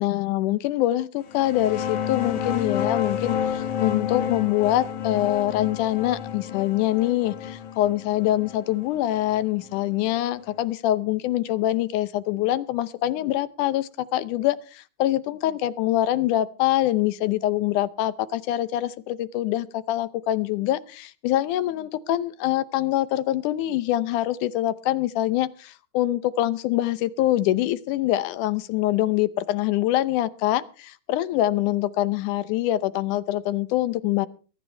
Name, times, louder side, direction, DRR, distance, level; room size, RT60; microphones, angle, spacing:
voice 1, 0.0-34.3, left 14 dB, 75° left, 15 dB, 2.2 m, -24 dB
sound 1, 1.3-10.6, left 8 dB, 60° left, 1.7 m, -30 dB
22.5 x 12.5 x 3.3 m, 0.35 s
omnidirectional pair, 3.8 m